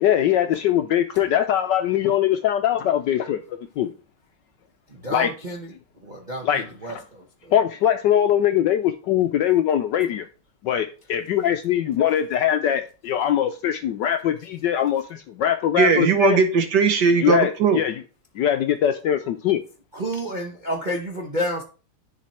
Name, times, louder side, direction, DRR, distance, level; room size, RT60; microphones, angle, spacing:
voice 1, 0.0-3.4 3.8-3.9 5.1-5.3 6.4-7.0 7.5-10.3 10.6-16.4 17.2-18.0 18.4-19.6, left 10 dB, 75° left, 1.0 m, -22 dB
voice 2, 4.9-5.7 6.0-7.5 19.9-21.6, equal, 40° right, 0.6 m, -30 dB
voice 3, 15.8-17.8, right 5 dB, 60° right, 1.3 m, -18 dB
10.5 x 4.1 x 4.3 m
omnidirectional pair, 2.4 m